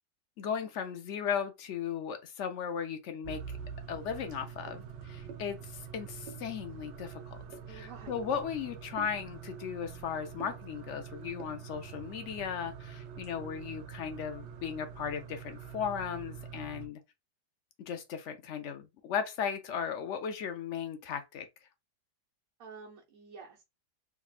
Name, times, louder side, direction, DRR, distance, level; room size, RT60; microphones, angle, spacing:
voice 1, 0.4-3.6 3.9-7.4 7.7-17.0 17.8-21.5, left 7 dB, 70° left, 0.7 m, -36 dB
sound 1, 3.2-16.9, right 7 dB, 80° right, 1.3 m, -45 dB
voice 2, 7.6-8.2 22.6-23.6, right 5 dB, 60° right, 1.2 m, -49 dB
3.6 x 3.4 x 2.3 m
omnidirectional pair, 1.8 m